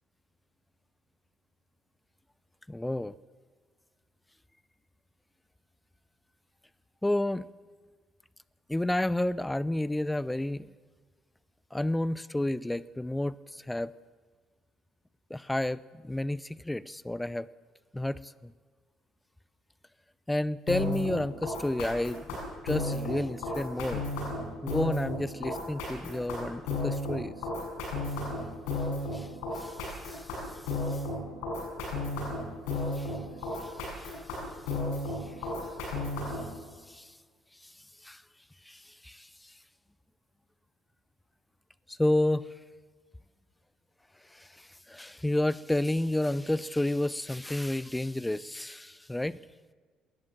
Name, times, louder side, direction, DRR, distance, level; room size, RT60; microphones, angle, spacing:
voice 1, 2.7-3.1 7.0-7.5 8.7-10.7 11.7-13.9 15.3-17.5 17.9-18.5 20.3-22.4 22.6-24.0 24.6-27.3 29.1-29.3 29.5-30.3 30.9-31.0 32.9-33.2 33.6-34.2 36.9-37.1 37.6-37.7 38.0-38.2 38.7-39.5 41.9-42.5 44.3-49.4, left 1 dB, 10° left, 20 dB, 0.6 m, -31 dB
sound 1, 20.7-36.5, left 2 dB, 65° left, 7.6 m, -33 dB
19.5 x 19.5 x 7.5 m, 1.5 s
figure-of-eight pair, 50°, 0 cm